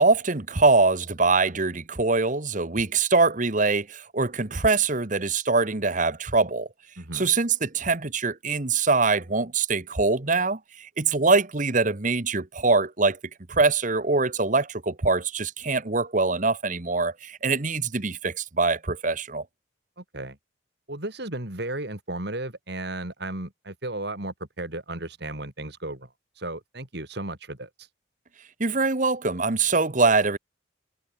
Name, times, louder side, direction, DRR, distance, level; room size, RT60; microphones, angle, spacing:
voice 1, 0.0-6.7 7.1-13.2 13.5-19.4 28.6-30.4, right 3 dB, 40° right, 1.2 m, -23 dB
voice 2, 7.0-7.3 20.0-20.4 20.9-26.1 26.3-27.9, right 2 dB, 55° right, 3.5 m, -34 dB
head